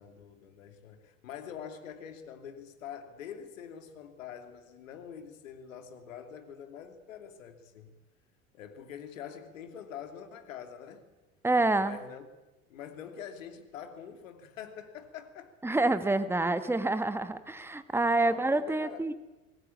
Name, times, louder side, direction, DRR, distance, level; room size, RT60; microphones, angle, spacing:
voice 1, 0.0-8.0 8.5-11.1 11.8-12.3 12.7-15.5 16.6-17.1 18.2-19.1, left 8 dB, 70° left, 7 dB, 2.8 m, -45 dB
voice 2, 11.4-12.0 15.6-19.1, right 2 dB, 5° right, 11 dB, 1.5 m, -27 dB
25.0 x 19.5 x 8.5 m, 1.1 s
figure-of-eight pair, 70°, 41 cm